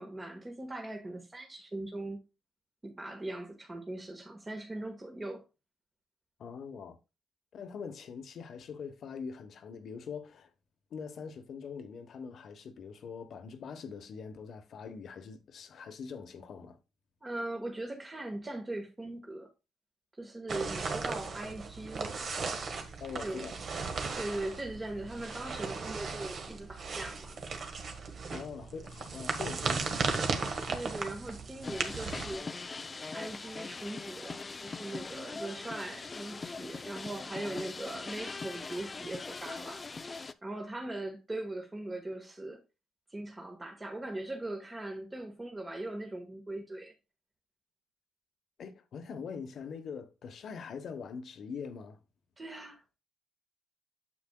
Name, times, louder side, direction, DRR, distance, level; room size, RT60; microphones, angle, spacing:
voice 1, 0.0-2.2 2.8-5.4 17.2-19.5 20.2-22.3 23.2-23.4 24.1-27.4 30.7-32.5 33.1-39.8 40.4-42.6 43.1-46.9 52.4-53.0, right 2 dB, 20° right, 1.5 m, -40 dB
voice 2, 6.4-7.0 7.5-10.5 10.9-16.8 23.0-23.7 28.3-30.2 48.6-52.0, left 6 dB, 60° left, 1.1 m, -43 dB
sound 1, 20.5-32.4, right 4 dB, 50° right, 1.4 m, -36 dB
sound 2, 31.6-40.3, left 4 dB, 30° left, 0.5 m, -41 dB
8.6 x 7.1 x 2.3 m
cardioid pair, 90°, 0 cm